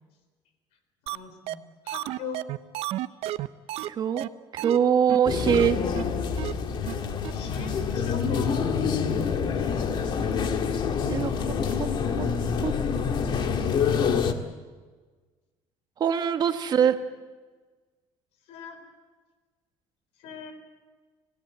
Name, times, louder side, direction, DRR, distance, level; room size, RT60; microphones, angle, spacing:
voice 1, 1.0-2.5 7.3-8.6 18.5-18.8 20.2-20.5, left 5 dB, 80° left, 8 dB, 4.0 m, -40 dB
sound 1, 1.1-1.2 1.5-1.6 1.9-3.9 4.2-4.3 4.6-4.8 5.1-5.2 5.5-5.7 5.9-6.0 6.4-6.5 6.9-7.0 7.2-7.3, right 14 dB, 70° right, 0.7 m, -31 dB
voice 2, 3.9-4.3 4.5-5.8 11.1-12.8 16.0-17.0, right 8 dB, 40° right, 8 dB, 1.4 m, -24 dB
sound 2, 5.3-14.3, left 6 dB, 45° left, 1.7 m, -26 dB
26.0 x 16.5 x 8.0 m, 1.4 s
cardioid pair, 135°, 11 cm